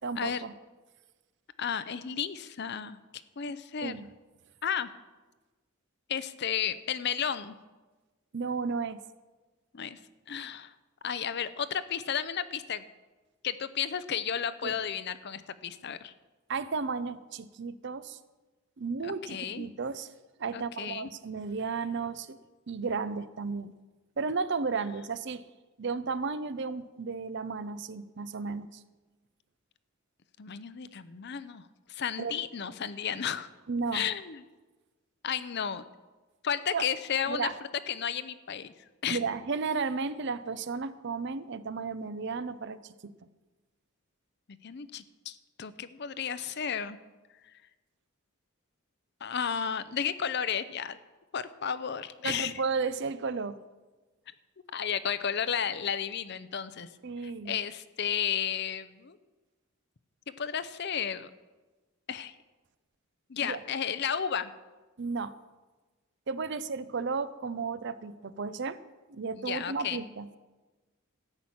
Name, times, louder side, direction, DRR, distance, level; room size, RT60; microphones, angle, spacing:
voice 1, 0.0-0.5 3.8-4.1 8.3-9.0 14.6-14.7 16.5-18.2 18.8-20.1 20.4-22.4 22.7-23.8 24.2-25.4 25.8-28.8 32.2-32.4 33.7-34.1 36.7-36.9 37.3-37.6 39.1-43.1 52.2-53.6 57.0-57.6 63.5-63.6 65.0-65.4 66.3-68.8 69.1-70.3, right 4 dB, 55° right, 14 dB, 0.6 m, -33 dB
voice 2, 1.6-3.0 3.4-4.1 4.6-4.9 6.1-7.5 9.7-10.0 10.3-10.7 11.0-12.8 13.4-16.1 19.0-19.7 20.5-21.1 30.4-31.6 31.9-33.5 33.9-34.4 35.2-35.8 36.4-37.5 37.9-38.7 39.0-39.2 44.6-47.0 49.2-51.0 51.3-52.5 54.7-56.9 57.2-59.2 60.3-61.3 62.1-62.3 63.3-64.5 69.4-70.0, left 8 dB, 50° left, 14 dB, 0.6 m, -33 dB
13.5 x 6.0 x 8.7 m, 1.2 s
head